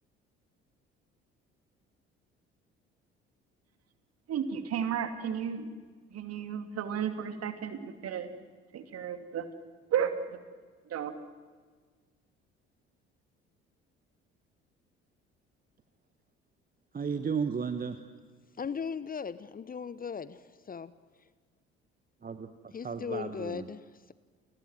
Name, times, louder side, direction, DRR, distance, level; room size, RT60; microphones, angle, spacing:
voice 1, 4.3-5.7 6.1-8.3 8.7-9.5 9.9-10.4 10.9-11.2, right 8 dB, 45° right, 10 dB, 2.7 m, -33 dB
voice 2, 16.9-18.0 22.2-23.7, right 6 dB, 25° right, 11 dB, 1.4 m, -34 dB
voice 3, 18.6-20.9 22.7-24.1, left 6 dB, 25° left, 17 dB, 1.0 m, -38 dB
29.5 x 20.5 x 7.7 m, 1.5 s
figure-of-eight pair, 50°, 33 cm